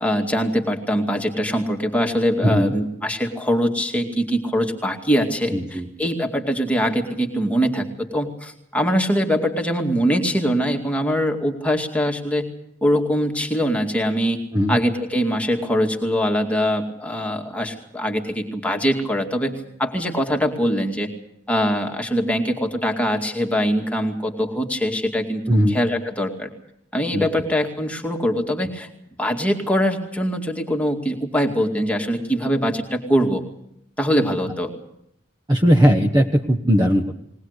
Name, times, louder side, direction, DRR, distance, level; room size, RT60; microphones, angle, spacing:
voice 1, 0.0-12.5 12.8-14.4 14.7-21.1 21.5-26.5 26.9-28.9 29.2-33.4 34.0-34.7, equal, 5° left, 2 dB, 2.3 m, -22 dB
voice 2, 2.4-2.7 5.5-5.9 14.5-14.8 25.5-25.8 27.1-27.2 35.5-37.2, equal, 20° right, 4 dB, 1.2 m, -18 dB
21.0 x 19.5 x 8.1 m, 0.75 s
head